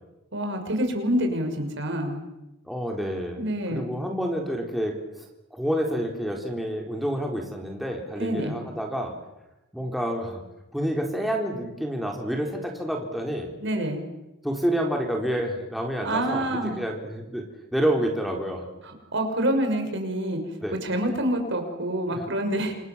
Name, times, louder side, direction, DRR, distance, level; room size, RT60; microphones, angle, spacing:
voice 1, 0.3-2.2 3.4-3.8 8.2-8.6 13.6-14.0 16.0-16.8 18.8-20.4 20.8-22.7, right 1 dB, 55° right, 5 dB, 6.2 m, -27 dB
voice 2, 2.7-4.9 5.5-9.1 9.7-10.4 10.7-13.5 14.4-17.4 17.7-18.7 20.6-20.7 22.1-22.2, equal, ahead, 0 dB, 3.8 m, -28 dB
28.0 x 28.0 x 7.4 m, 0.96 s
head